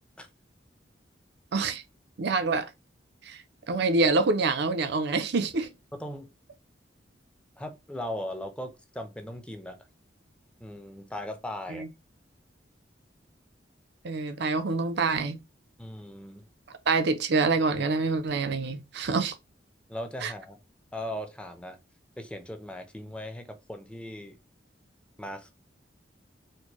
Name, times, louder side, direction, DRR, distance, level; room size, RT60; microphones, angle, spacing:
voice 1, 1.5-1.8 2.2-2.7 3.3-3.4 3.7-5.7 11.7-11.9 14.0-15.4 16.7-19.3 20.2-20.3, right 3 dB, 65° right, 0.5 m, -26 dB
voice 2, 5.9-6.3 7.6-9.8 10.6-11.9 15.8-16.4 19.9-20.6 20.9-21.8 22.2-24.4 25.2-25.5, left 1 dB, 5° left, 0.6 m, -38 dB
4.4 x 2.1 x 3.0 m
head